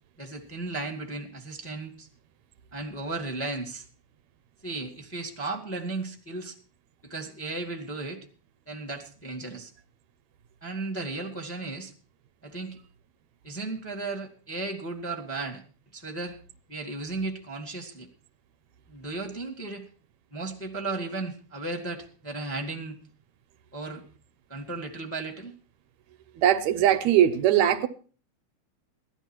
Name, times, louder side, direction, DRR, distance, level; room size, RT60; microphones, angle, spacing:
voice 1, 0.2-2.1 2.7-3.8 4.6-6.5 7.0-8.2 8.7-9.7 10.6-11.9 12.4-12.8 13.4-15.6 15.9-16.4 16.7-18.1 18.9-19.8 20.3-23.0 23.7-24.0 24.5-25.5, right 3 dB, 5° left, 1.5 m, -35 dB
voice 2, 26.4-27.9, right 11 dB, 75° right, 2.1 m, -21 dB
17.5 x 12.0 x 4.5 m
omnidirectional pair, 3.3 m